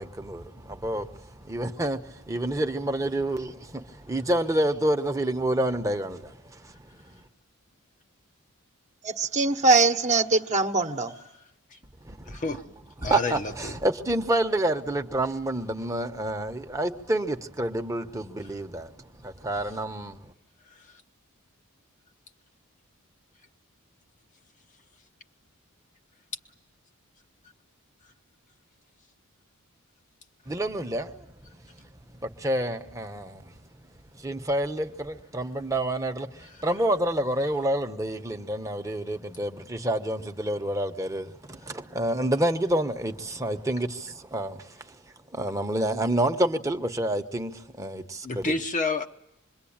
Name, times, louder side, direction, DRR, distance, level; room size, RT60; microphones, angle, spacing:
voice 1, 0.0-6.7 7.0-7.1 12.0-12.4 13.0-18.9 19.2-20.2 30.5-31.3 31.8-31.9 32.2-33.5 34.1-45.0 45.3-48.6, right 1 dB, 15° right, 1.1 m, -28 dB
voice 2, 9.0-11.1, right 3 dB, 35° right, 1.2 m, -22 dB
voice 3, 12.3-12.6 13.0-13.8 48.2-49.1, left 3 dB, 35° left, 0.9 m, -29 dB
26.0 x 22.5 x 8.8 m
head